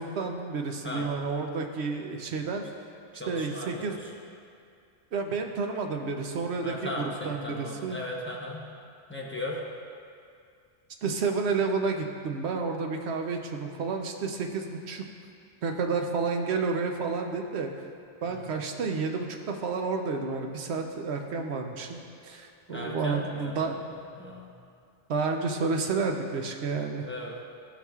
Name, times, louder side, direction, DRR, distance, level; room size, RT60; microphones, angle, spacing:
voice 1, 0.0-2.6 3.3-4.0 5.1-8.0 11.0-15.0 15.6-17.7 18.2-23.8 25.1-27.1, right 4 dB, 75° right, 4 dB, 1.0 m, -30 dB
voice 2, 3.1-4.1 6.6-8.7 9.1-9.6 18.2-18.5 22.7-24.5 27.0-27.3, left 1 dB, 10° left, -3 dB, 0.9 m, -37 dB
15.0 x 5.9 x 2.4 m, 2.4 s
omnidirectional pair, 1.1 m